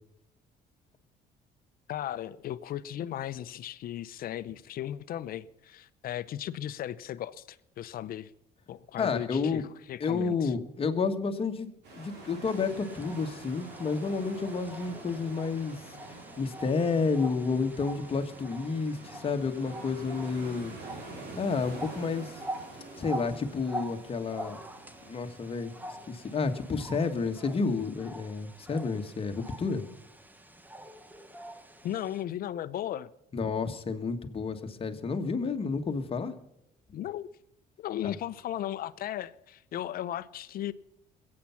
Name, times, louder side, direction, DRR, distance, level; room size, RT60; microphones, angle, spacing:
voice 1, 1.9-8.3 8.7-9.6 9.9-10.5 31.8-33.1 36.9-37.3 37.8-40.7, left 11 dB, 60° left, 0.7 m, -36 dB
voice 2, 8.9-9.6 10.0-15.8 16.4-20.8 21.4-22.4 23.0-24.6 25.1-29.8 33.3-36.3 38.0-38.1, left 4 dB, 35° left, 1.6 m, -30 dB
sound 1, 11.8-27.1, right 2 dB, 80° right, 5.0 m, -48 dB
sound 2, 12.4-32.2, right 1 dB, 10° right, 1.1 m, -45 dB
21.5 x 8.7 x 5.8 m
cardioid pair, 110°, 17 cm